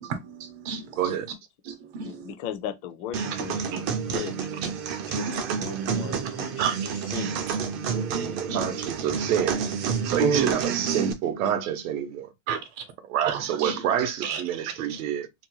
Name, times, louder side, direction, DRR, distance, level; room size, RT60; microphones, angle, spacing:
voice 1, 0.0-1.0 1.7-2.3 5.3-5.4 6.6-6.9 7.9-8.9 10.2-10.6 11.4-11.5 12.5-12.8 13.1-13.8 14.2-14.4, right 6 dB, 55° right, 0.8 m, -30 dB
voice 2, 1.0-1.3 8.5-9.7 10.1-12.3 13.1-15.5, right 9 dB, 85° right, 0.7 m, -27 dB
voice 3, 2.0-4.5 5.1-6.7 7.1-7.5, left 9 dB, 35° left, 0.4 m, -37 dB
sound 1, 3.1-11.1, right 6 dB, 30° right, 0.4 m, -29 dB
2.6 x 2.1 x 2.9 m
supercardioid pair, 150°, 41 cm